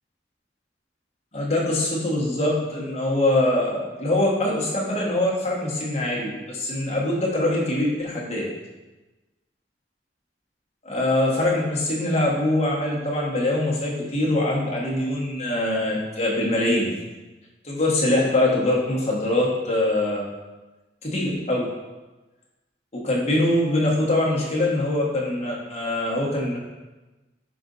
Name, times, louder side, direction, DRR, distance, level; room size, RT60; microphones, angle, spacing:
voice 1, 1.3-8.5 10.8-16.9 17.6-20.2 21.0-21.7 22.9-26.6, left 1 dB, 35° left, -4 dB, 1.3 m, -23 dB
6.0 x 4.3 x 3.9 m, 1.1 s
head